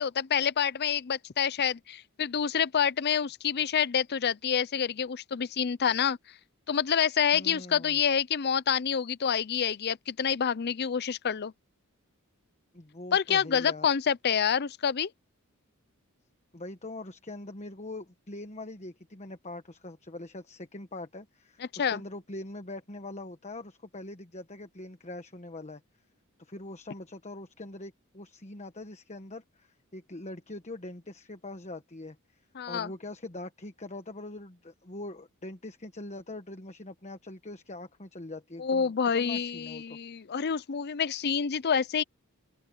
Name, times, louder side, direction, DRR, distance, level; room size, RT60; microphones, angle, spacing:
voice 1, 0.0-6.2 6.7-11.5 13.1-15.1 21.7-22.0 32.6-32.9 38.6-42.0, left 7 dB, 50° left, 0.5 m, -27 dB
voice 2, 7.3-8.0 12.7-13.9 16.5-25.8 26.4-32.2 32.7-40.0, left 2 dB, 30° left, 1.3 m, -42 dB
open air
head